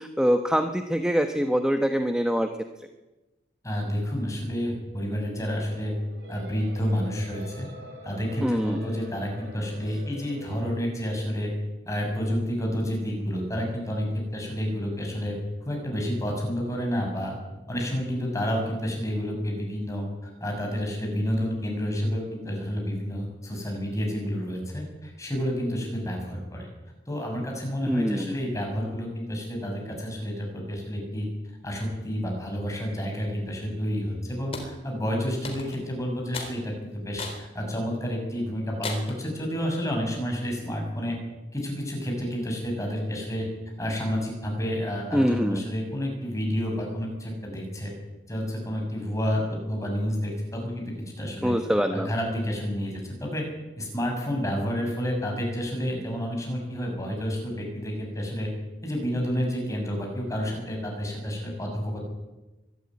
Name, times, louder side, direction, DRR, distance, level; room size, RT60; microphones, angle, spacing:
voice 1, 0.0-2.5 8.4-8.8 27.9-28.4 45.1-45.6 51.4-52.1, equal, 5° right, 6 dB, 1.0 m, -24 dB
voice 2, 3.6-5.9 6.3-7.7 8.0-11.5 11.9-14.1 14.3-15.4 15.6-17.3 17.7-26.7 27.1-31.3 31.6-41.2 41.5-43.5 43.8-47.9 48.3-51.5 51.9-53.4 53.8-58.5 58.8-62.0, equal, 15° left, 1 dB, 6.8 m, -30 dB
sound 1, 5.4-10.7, left 1 dB, 70° right, 6.1 m, -45 dB
sound 2, 34.5-34.7 35.4-35.9 36.3-36.6 37.2-37.4 37.9-38.0 38.8-39.2, left 3 dB, 35° left, 3.9 m, -35 dB
23.5 x 13.0 x 9.6 m, 1.1 s
head